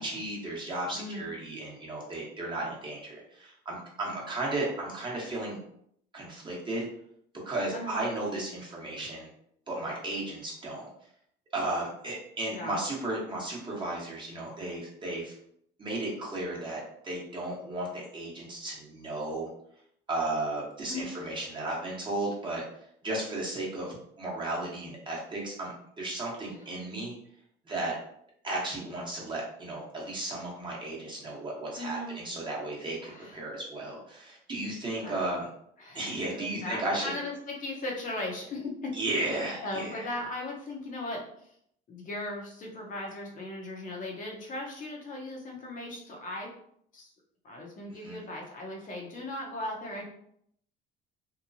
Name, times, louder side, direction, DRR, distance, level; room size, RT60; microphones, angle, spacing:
voice 1, 0.0-5.6 6.1-6.9 7.4-9.3 9.7-10.9 11.5-15.3 15.8-19.5 20.1-22.6 23.0-27.1 27.7-27.9 28.4-35.5 35.9-37.1 38.9-40.0 48.0-48.2, right 2 dB, 25° right, -4 dB, 1.0 m, -34 dB
voice 2, 31.8-32.2 33.0-33.4 35.0-35.3 35.8-38.9 39.6-41.5 41.9-46.5 46.9-47.1 47.4-50.0, left 2 dB, 40° left, -1 dB, 0.8 m, -38 dB
2.9 x 2.1 x 2.6 m, 0.68 s
cardioid pair, 105°, 20 cm